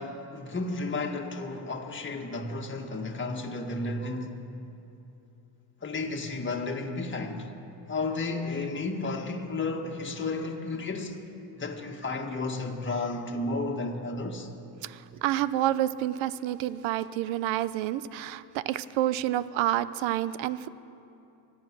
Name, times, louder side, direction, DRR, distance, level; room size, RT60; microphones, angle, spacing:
voice 1, 0.0-4.4 5.8-7.5 7.9-11.2 11.5-14.5, left 3 dB, 25° left, 1.8 m, -32 dB
voice 2, 14.8-20.7, right 13 dB, 80° right, 0.7 m, -29 dB
24.5 x 8.8 x 6.2 m
cardioid pair, 90°, 45 cm